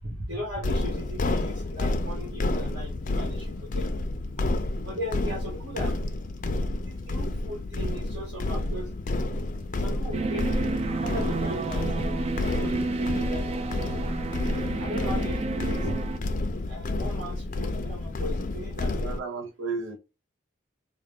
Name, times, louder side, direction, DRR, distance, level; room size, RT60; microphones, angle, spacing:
voice 1, 0.0-3.9 4.8-5.9 6.4-6.6 6.8-8.9 9.8-10.4 11.0-13.4 14.7-16.0 16.7-19.0, left 1 dB, 70° right, 1.5 m, -38 dB
sound 1, 0.6-19.2, left 2 dB, 40° left, 0.4 m, -30 dB
sound 2, 10.1-16.2, right 3 dB, 30° right, 0.3 m, -30 dB
voice 2, 14.5-14.8 19.0-20.0, right 4 dB, 90° right, 0.7 m, -34 dB
3.7 x 2.2 x 3.5 m
head